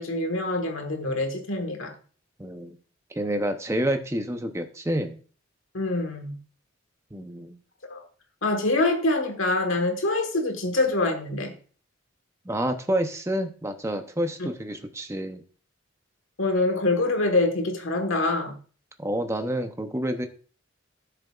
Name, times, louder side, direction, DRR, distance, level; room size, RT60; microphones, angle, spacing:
voice 1, 0.0-1.9 5.7-6.3 7.9-8.1 8.4-11.5 14.4-14.5 16.4-18.5, left 2 dB, 80° left, 6 dB, 1.5 m, -25 dB
voice 2, 2.4-2.8 3.1-5.2 7.1-7.6 12.4-15.4 19.0-20.3, right 1 dB, 15° right, 7 dB, 0.7 m, -28 dB
12.0 x 6.8 x 2.4 m, 0.40 s
head